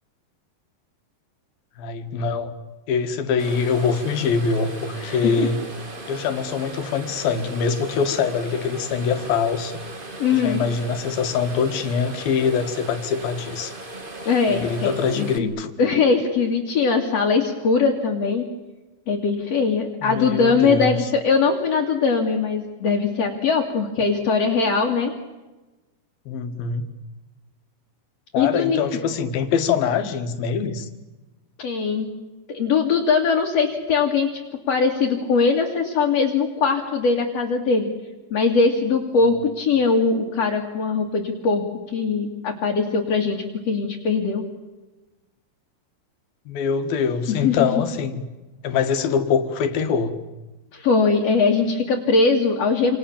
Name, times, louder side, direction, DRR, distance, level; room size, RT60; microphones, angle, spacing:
voice 1, 1.8-2.5 2.9-5.6 6.1-9.8 10.3-13.7 14.5-15.7 20.0-21.1 26.3-26.9 28.3-30.9 46.5-48.2 48.6-50.1, left 6 dB, 65° left, 8 dB, 3.5 m, -24 dB
sound 1, 3.4-15.4, right 2 dB, 40° right, 0.7 m, -37 dB
voice 2, 5.0-5.5 10.2-10.6 14.2-15.5 15.8-18.5 19.1-25.1 28.4-28.8 31.6-32.1 32.5-34.3 34.7-37.9 38.3-44.4 47.3-47.7 50.7-53.0, left 4 dB, 45° left, 0 dB, 3.1 m, -21 dB
28.5 x 27.5 x 7.3 m, 1.1 s
omnidirectional pair, 4.7 m